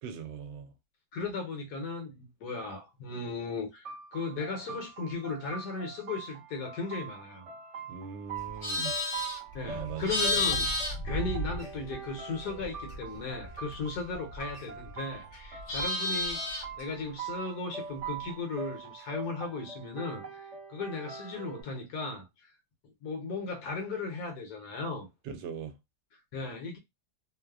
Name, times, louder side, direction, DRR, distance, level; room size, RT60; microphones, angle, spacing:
voice 1, 0.0-0.7 7.9-9.0 9.2-9.3 9.7-10.2 25.2-25.8, right 7 dB, 80° right, 1.3 m, -40 dB
voice 2, 1.1-7.5 9.5-10.7 11.0-16.4 16.8-22.5 23.0-25.1 26.3-26.8, left 3 dB, 65° left, 1.1 m, -36 dB
sound 1, 3.8-21.6, right 6 dB, 50° right, 1.0 m, -43 dB
Livestock farm animals working animals, 8.4-12.1 12.4-14.9 15.2-16.8, left 2 dB, 45° left, 0.9 m, -33 dB
3.0 x 2.0 x 2.3 m
omnidirectional pair, 2.0 m